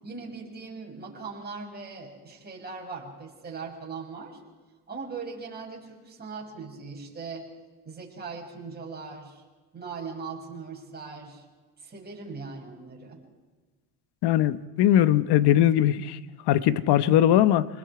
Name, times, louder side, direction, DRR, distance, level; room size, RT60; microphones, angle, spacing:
voice 1, 0.0-4.4 4.9-7.4 7.8-9.4 9.7-11.4 11.8-13.2, right 4 dB, 20° right, -1 dB, 6.6 m, -39 dB
voice 2, 14.2-16.2 16.5-17.7, left 11 dB, 60° left, 14 dB, 1.1 m, -20 dB
28.5 x 20.5 x 4.9 m, 1.3 s
cardioid pair, 110°, 45 cm